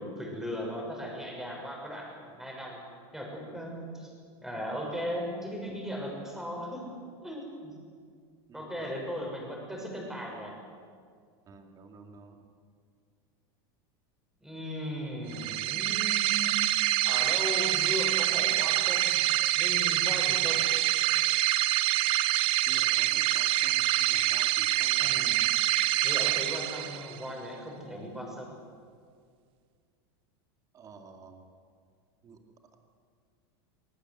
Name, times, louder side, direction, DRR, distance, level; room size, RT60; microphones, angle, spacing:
voice 1, 0.0-2.8 3.1-4.1 4.4-6.8 7.2-7.7 8.5-10.5 14.4-16.7 17.0-19.2 19.6-20.6 25.0-25.4 26.0-28.5, equal, 5° right, 0 dB, 6.2 m, -37 dB
voice 2, 8.5-9.0 11.5-12.4 22.7-25.2 30.7-31.5 32.2-32.7, right 5 dB, 25° right, 4 dB, 2.4 m, -50 dB
sound 1, 15.3-27.2, right 15 dB, 45° right, 0.8 m, -26 dB
26.0 x 18.5 x 8.0 m, 2.1 s
supercardioid pair, 140°, 13 cm